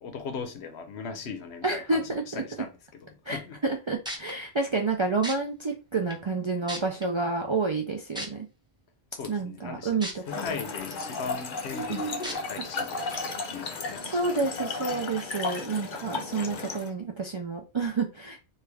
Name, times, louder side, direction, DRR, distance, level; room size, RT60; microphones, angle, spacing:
voice 1, 0.0-3.6 9.1-10.0 10.3-14.4, left 5 dB, 85° left, 0.9 m, -39 dB
voice 2, 1.6-2.4 3.3-8.5 9.3-10.4 11.9-12.0 14.0-18.4, right 3 dB, 50° right, 0.3 m, -29 dB
sound 1, 4.1-4.3 5.2-5.3 6.1-6.2 6.7-7.0 8.2-8.3 10.0-10.1 10.6-10.7 12.2-12.3 13.1-13.2, equal, 5° right, 0.6 m, -34 dB
Trickle dribble / Fill (with liquid), 10.2-16.9, left 3 dB, 55° left, 0.7 m, -34 dB
3.2 x 2.4 x 3.3 m
omnidirectional pair, 1.1 m